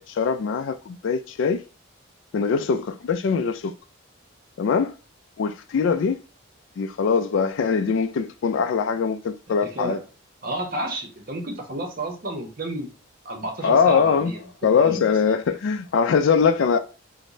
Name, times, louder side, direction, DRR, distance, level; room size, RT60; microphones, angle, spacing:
voice 1, 0.1-1.6 2.3-3.7 4.6-4.9 5.4-6.2 6.8-10.0 13.6-14.3 14.6-16.8, left 6 dB, 65° left, 0.3 m, -22 dB
voice 2, 9.5-10.0 10.4-12.9 13.2-14.4 14.8-15.3, right 1 dB, 45° right, 0.7 m, -31 dB
4.7 x 2.1 x 2.6 m
head